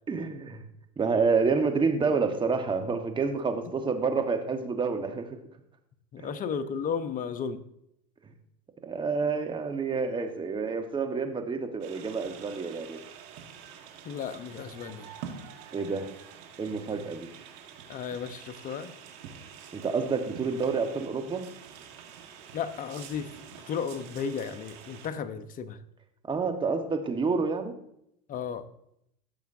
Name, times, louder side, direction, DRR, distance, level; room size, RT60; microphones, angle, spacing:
voice 1, 0.1-0.6 1.0-5.3 6.2-6.3 8.8-13.0 15.7-16.1 16.6-17.3 19.7-21.4 26.3-27.7, right 4 dB, 25° right, 5 dB, 1.3 m, -28 dB
voice 2, 6.1-7.6 14.0-15.1 17.9-18.9 22.5-25.8 28.3-28.7, left 6 dB, 40° left, 11 dB, 0.8 m, -34 dB
sound 1, 11.8-25.1, right 7 dB, 65° right, 1.5 m, -47 dB
14.0 x 6.9 x 2.7 m, 0.77 s
hypercardioid pair, 90°, 21 cm